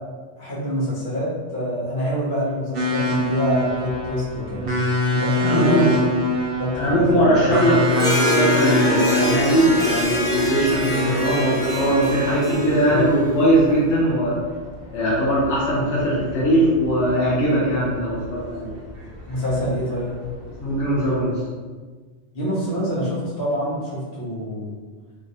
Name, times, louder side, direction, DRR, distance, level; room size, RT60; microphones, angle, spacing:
voice 1, 0.4-4.6 5.1-6.0 6.6-7.3 12.8-13.0 19.3-20.1 22.3-24.7, equal, 65° left, -7 dB, 1.3 m, -25 dB
sound 1, 2.7-21.2, left 2 dB, 60° right, 0.8 m, -27 dB
voice 2, 5.4-5.9 6.8-14.3 14.9-18.7 20.6-21.3, right 1 dB, 80° left, -8 dB, 1.0 m, -20 dB
Harp, 7.9-13.6, equal, 5° left, 0.3 m, -25 dB
3.3 x 2.3 x 2.6 m, 1.5 s
omnidirectional pair, 1.2 m